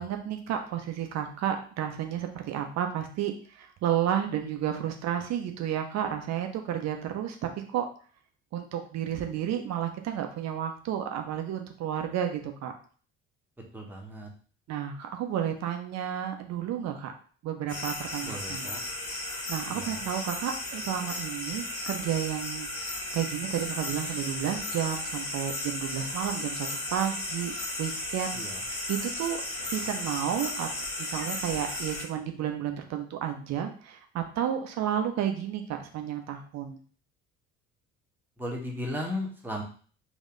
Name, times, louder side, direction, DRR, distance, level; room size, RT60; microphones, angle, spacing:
voice 1, 0.0-7.4 7.7-7.9 8.5-12.7 14.7-17.1 17.4-18.7 19.5-27.5 27.8-30.7 31.0-36.8, right 10 dB, 40° right, 5 dB, 0.9 m, -32 dB
voice 2, 13.7-14.3 18.2-18.8 19.7-20.0 28.3-28.6 38.4-39.6, left 1 dB, 5° right, -1 dB, 1.3 m, -35 dB
sound 1, 17.7-32.0, left 2 dB, 70° left, 1.7 m, -35 dB
4.1 x 2.9 x 3.9 m, 0.42 s
figure-of-eight pair, 55°, 40 cm